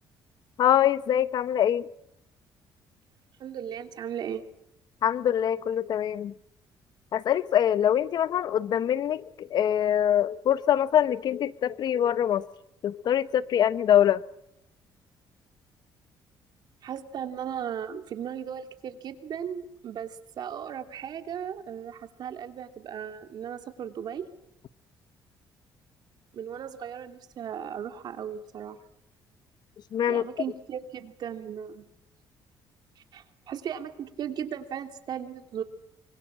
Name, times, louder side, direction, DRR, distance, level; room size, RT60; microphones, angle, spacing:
voice 1, 0.6-1.9 5.0-6.3 7.1-12.5 12.8-14.2 29.9-30.2, left 10 dB, 60° left, 1.0 m, -24 dB
voice 2, 3.4-4.4 16.8-24.3 26.3-28.8 30.1-31.9 33.0-35.6, right 8 dB, 60° right, 2.8 m, -36 dB
25.0 x 25.0 x 7.5 m
cardioid pair, 110°, 8 cm